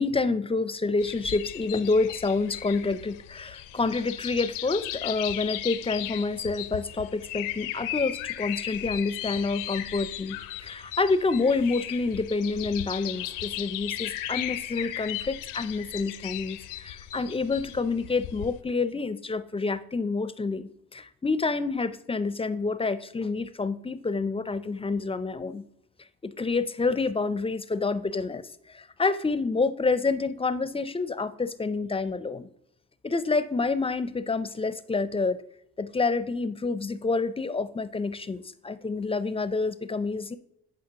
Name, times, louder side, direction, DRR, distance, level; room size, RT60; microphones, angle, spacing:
voice 1, 0.0-25.6 26.2-32.5 33.0-35.4 35.8-40.4, left 3 dB, 20° left, 13 dB, 0.5 m, -28 dB
sound 1, 1.0-18.6, left 13 dB, 75° left, 0.6 m, -36 dB
9.5 x 5.0 x 2.9 m, 0.78 s
hypercardioid pair, 55°, 32 cm